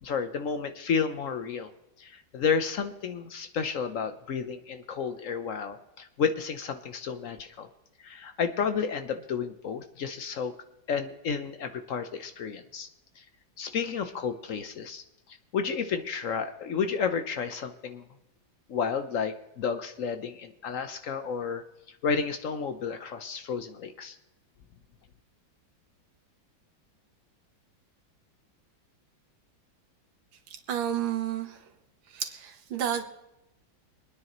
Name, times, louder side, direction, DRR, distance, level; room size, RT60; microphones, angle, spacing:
voice 1, 0.0-1.7 2.0-7.7 8.0-10.5 10.9-12.9 13.2-13.3 13.6-15.0 15.5-18.1 18.7-21.6 22.0-24.2, left 6 dB, 65° left, 9 dB, 0.8 m, -31 dB
voice 2, 30.5-31.7 32.1-33.0, right 10 dB, 80° right, 6 dB, 2.0 m, -31 dB
25.0 x 9.7 x 3.0 m, 0.92 s
omnidirectional pair, 2.1 m